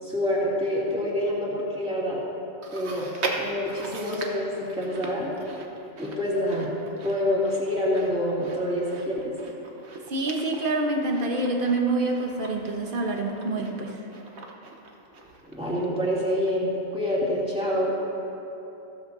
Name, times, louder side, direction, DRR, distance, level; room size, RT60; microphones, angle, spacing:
voice 1, 0.0-2.2 2.7-3.1 3.4-5.3 6.0-6.7 7.0-9.3 15.5-17.9, equal, 5° right, -7 dB, 2.6 m, -27 dB
Chewing mastication, 2.6-16.2 16.5-16.6 17.4-17.5, right 3 dB, 85° right, 1.3 m, -40 dB
voice 2, 10.1-14.0, right 2 dB, 55° right, 2 dB, 1.3 m, -26 dB
15.5 x 13.5 x 2.7 m, 3.0 s
omnidirectional pair, 1.1 m